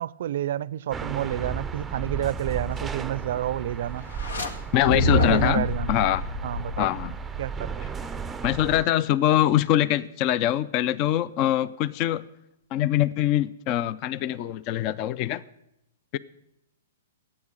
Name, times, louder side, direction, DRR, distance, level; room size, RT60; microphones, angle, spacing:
voice 1, 0.0-4.1 4.9-6.0 6.4-6.9 7.4-7.9, right 12 dB, 65° right, 0.4 m, -29 dB
sound 1, 0.9-8.8, right 5 dB, 10° right, 0.5 m, -35 dB
sound 2, 4.0-4.5 4.8-7.4, left 2 dB, 85° left, 1.7 m, -27 dB
voice 2, 4.7-6.2 6.8-7.1 8.4-12.2 12.7-15.4 16.1-16.2, left 12 dB, 40° left, 0.4 m, -23 dB
12.0 x 8.8 x 9.0 m
hypercardioid pair, 135°, 0 cm